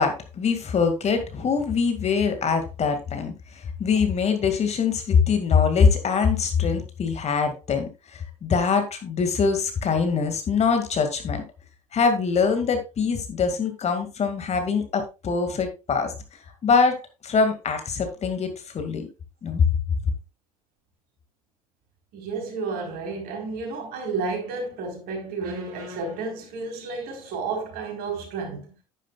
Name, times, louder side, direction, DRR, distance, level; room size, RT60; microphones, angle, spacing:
voice 1, 0.0-11.4 11.9-16.1 16.6-17.0 17.2-18.5 18.7-19.1 19.4-19.6, left 5 dB, 35° left, 2.2 m, -23 dB
voice 2, 22.1-28.7, right 4 dB, 60° right, 4.1 m, -31 dB
10.0 x 10.0 x 2.4 m
hypercardioid pair, 65°, 18 cm